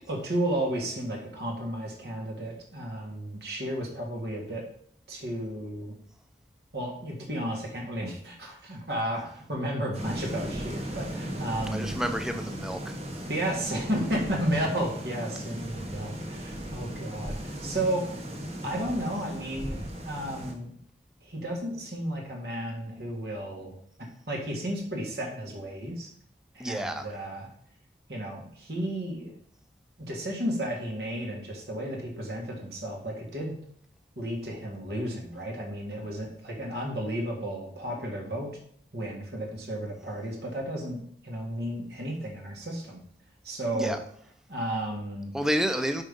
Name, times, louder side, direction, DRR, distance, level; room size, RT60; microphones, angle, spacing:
voice 1, 0.1-4.6 5.1-5.9 6.7-12.0 13.3-18.4 18.6-20.7 21.2-26.1 26.5-27.5 28.1-29.4 30.1-33.5 34.2-38.6 38.9-43.0 43.4-44.0 44.5-45.3, right 1 dB, 65° right, -1 dB, 1.7 m, -33 dB
sound 1, 9.9-20.5, equal, 35° right, 1.2 m, -37 dB
voice 2, 11.7-12.9 26.6-27.1 43.7-44.0 45.3-46.0, equal, 5° right, 6 dB, 0.5 m, -29 dB
5.6 x 5.0 x 5.3 m, 0.63 s
head